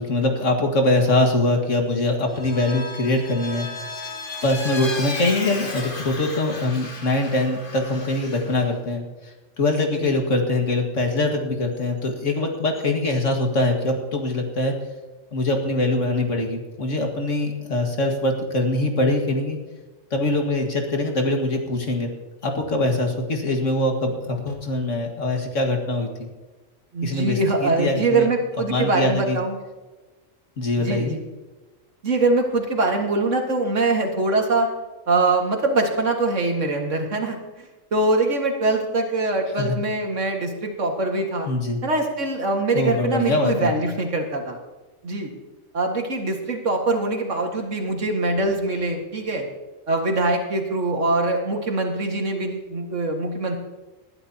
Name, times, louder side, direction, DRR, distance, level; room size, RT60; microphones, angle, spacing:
voice 1, 0.0-3.7 4.4-14.8 15.3-19.6 20.1-22.1 22.4-26.3 27.0-28.3 28.7-29.4 30.6-31.2 39.6-39.8 41.5-41.8 42.7-43.7, left 2 dB, 70° left, 3 dB, 2.1 m, -23 dB
Vehicle, 2.3-8.7, left 3 dB, 40° left, 1.7 m, -34 dB
voice 2, 9.8-10.1 26.9-29.6 30.8-31.2 32.0-34.7 35.1-37.4 37.9-41.5 41.8-44.6 45.0-45.3 45.7-49.5 49.9-53.6, right 2 dB, 70° right, 2 dB, 2.2 m, -23 dB
19.5 x 12.0 x 2.9 m, 1.2 s
omnidirectional pair, 1.3 m